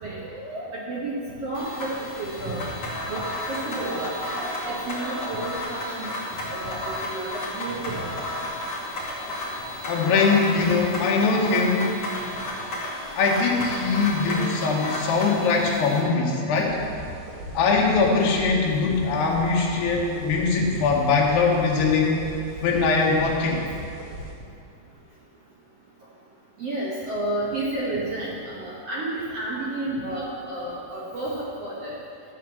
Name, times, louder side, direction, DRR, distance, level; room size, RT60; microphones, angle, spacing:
voice 1, 0.0-1.9 2.2-2.7 3.1-3.2 3.5-6.1 6.5-7.3 7.5-8.1 9.9-10.1 10.8-10.9 11.3-11.5 14.3-15.0 20.6-20.8 26.6-31.3 31.6-31.9, right 2 dB, 70° right, -6 dB, 1.4 m, -31 dB
sound 1, 1.5-16.0, left 1 dB, 40° left, 2.7 m, -33 dB
voice 2, 9.9-11.9 13.2-16.8 17.6-22.2 22.6-23.6, left 4 dB, 75° left, -1 dB, 3.4 m, -22 dB
sound 2, 16.7-24.3, right 1 dB, 55° right, 2.0 m, -39 dB
13.5 x 4.7 x 7.6 m, 2.5 s
omnidirectional pair, 4.8 m